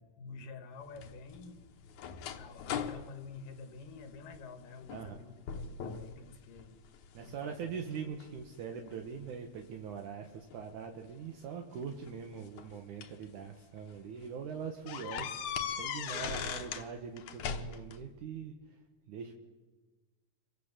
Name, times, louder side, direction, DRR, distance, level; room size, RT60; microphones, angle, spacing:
voice 1, 0.2-6.8 7.2-7.7 16.1-16.5, left 4 dB, 90° left, 9 dB, 3.6 m, -49 dB
sound 1, 1.0-4.4 4.8-5.2 5.5-6.1 6.6-7.3 7.9-9.3 10.5-10.6 11.8-13.2 13.8-13.9 14.2-14.3 14.9-16.9 17.2-18.0, left 7 dB, 70° left, 2.6 m, -39 dB
voice 2, 4.9-5.3 7.1-18.8 19.1-19.3, right 6 dB, 70° right, 3 dB, 2.9 m, -42 dB
28.0 x 24.5 x 7.5 m, 1.3 s
omnidirectional pair, 3.7 m